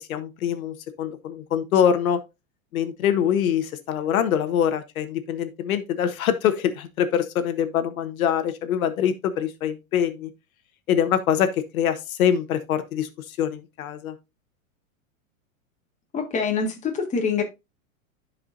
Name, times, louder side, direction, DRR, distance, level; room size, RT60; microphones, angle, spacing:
voice 1, 0.0-2.2 2.7-10.3 10.9-14.1, left 9 dB, 80° left, 1.2 m, -24 dB
voice 2, 16.1-17.4, left 5 dB, 15° left, 1.7 m, -25 dB
13.5 x 4.8 x 2.6 m
supercardioid pair, 140°, 41 cm